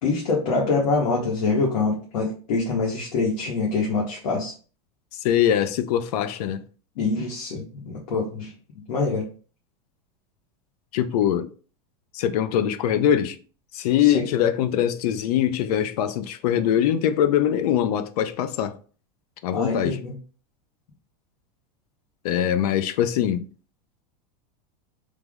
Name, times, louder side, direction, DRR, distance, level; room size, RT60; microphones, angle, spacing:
voice 1, 0.0-4.5 7.0-8.5 8.9-9.3 14.1-14.2 19.5-20.1, left 3 dB, 85° left, 1.1 m, -25 dB
voice 2, 5.2-6.6 10.9-11.5 12.1-13.4 13.7-18.8 19.4-20.0 22.2-23.4, left 10 dB, 70° left, 0.4 m, -22 dB
3.3 x 2.0 x 3.4 m
supercardioid pair, 160°, 21 cm